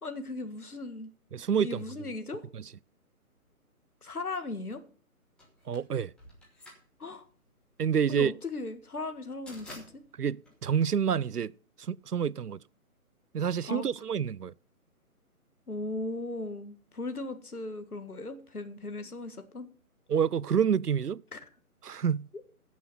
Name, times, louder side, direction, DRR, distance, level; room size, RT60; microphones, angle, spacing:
voice 1, 0.0-1.1 1.6-2.4 4.0-4.8 7.0-7.3 8.1-10.0 13.7-13.9 15.7-19.7 21.3-21.4, left 2 dB, 75° left, 1.9 m, -37 dB
voice 2, 1.3-1.8 2.5-2.6 5.7-6.1 7.8-8.3 10.2-11.5 11.8-12.6 13.3-14.5 20.1-21.2 21.8-22.3, right 7 dB, 90° right, 0.6 m, -28 dB
sound 1, 5.4-11.5, left 1 dB, ahead, 1.3 m, -52 dB
16.0 x 6.2 x 5.5 m
figure-of-eight pair, 145°, 45 cm